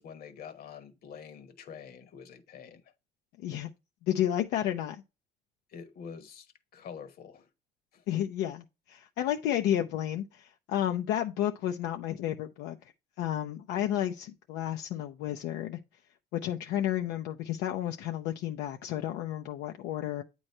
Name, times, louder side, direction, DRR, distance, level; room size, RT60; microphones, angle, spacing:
voice 1, 0.0-2.9 5.7-7.5 7.9-8.0, left 7 dB, 65° left, 1.2 m, -46 dB
voice 2, 4.1-5.0 8.1-12.8 13.2-15.8 16.3-20.2, left 11 dB, 90° left, 0.6 m, -31 dB
8.8 x 3.1 x 5.3 m
cardioid pair, 110°, 17 cm